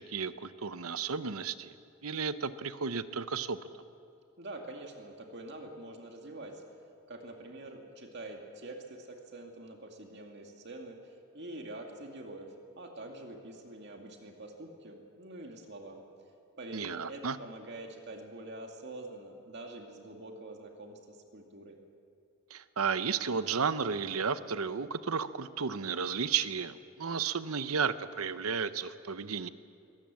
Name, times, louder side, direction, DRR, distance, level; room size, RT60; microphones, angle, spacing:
voice 1, 0.0-1.7 2.0-3.6 16.7-17.4 22.5-29.5, right 6 dB, 80° right, 13 dB, 0.8 m, -33 dB
voice 2, 4.4-6.6 7.1-16.0 16.6-21.8, right 2 dB, 50° right, 2 dB, 2.3 m, -45 dB
22.0 x 17.5 x 7.6 m, 2.5 s
head